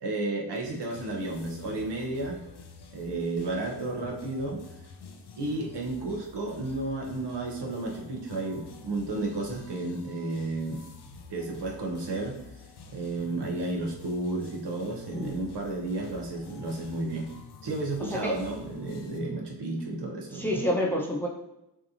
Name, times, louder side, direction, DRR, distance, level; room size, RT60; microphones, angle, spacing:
voice 1, 0.0-2.4 2.9-4.6 5.4-10.8 11.3-12.4 12.9-17.3 17.6-20.6, right 2 dB, 70° right, -1 dB, 1.0 m, -32 dB
sound 1, 0.6-19.2, left 4 dB, 65° left, 0.7 m, -48 dB
voice 2, 18.0-18.3 20.3-21.3, equal, 5° left, -3 dB, 0.9 m, -28 dB
6.1 x 2.9 x 2.7 m, 0.89 s
cardioid pair, 70°, 43 cm